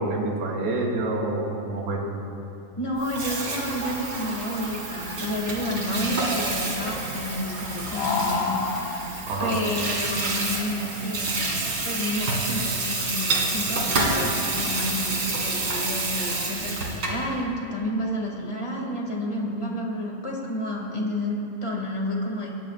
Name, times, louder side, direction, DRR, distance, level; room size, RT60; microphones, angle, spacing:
voice 1, 0.0-2.0 9.3-9.5, right 2 dB, 75° right, -3 dB, 3.8 m, -27 dB
voice 2, 2.7-8.7 9.4-11.3 11.8-22.5, left 1 dB, 15° left, -1 dB, 0.9 m, -30 dB
Water tap faucet / Sink (filling or washing), 2.9-17.3, right 3 dB, 35° right, 2.5 m, -29 dB
sound 1, 3.1-16.5, left 5 dB, 75° left, 2.8 m, -36 dB
24.0 x 19.0 x 2.5 m, 2.9 s
omnidirectional pair, 4.5 m